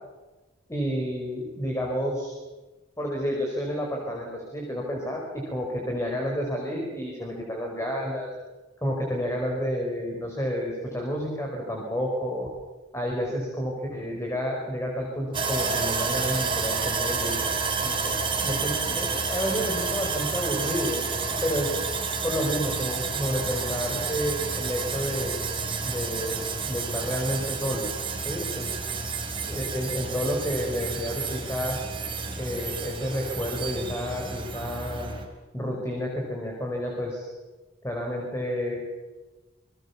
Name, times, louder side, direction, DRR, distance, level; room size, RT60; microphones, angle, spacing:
voice 1, 0.7-2.3 3.0-5.2 5.5-8.3 8.8-12.5 12.9-21.1 21.4-21.7 22.2-25.4 25.8-27.9 28.2-28.7 29.4-31.8 32.4-35.2 35.5-37.3 37.8-38.8, equal, 15° left, 0 dB, 5.1 m, -30 dB
Sawing, 15.3-35.2, right 4 dB, 25° right, 3.8 m, -30 dB
29.0 x 21.5 x 7.2 m, 1.2 s
head